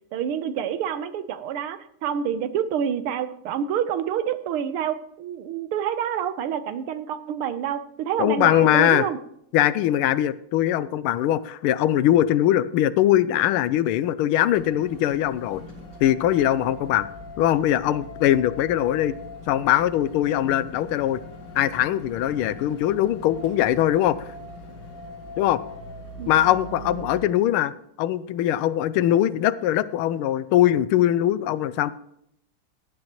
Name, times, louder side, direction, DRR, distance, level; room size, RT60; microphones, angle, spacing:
voice 1, 0.1-9.2 26.2-26.5 26.9-27.1, right 9 dB, 80° right, 11 dB, 1.7 m, -28 dB
voice 2, 8.2-9.1 9.5-15.6 16.0-17.1 17.4-19.1 19.5-21.2 21.6-24.3 25.4-25.6 26.3-27.7 28.0-31.9, left 12 dB, 80° left, 16 dB, 1.4 m, -21 dB
sound 1, 14.5-27.2, left 1 dB, 50° left, 4.3 m, -40 dB
16.0 x 11.0 x 3.0 m, 0.73 s
omnidirectional pair, 2.4 m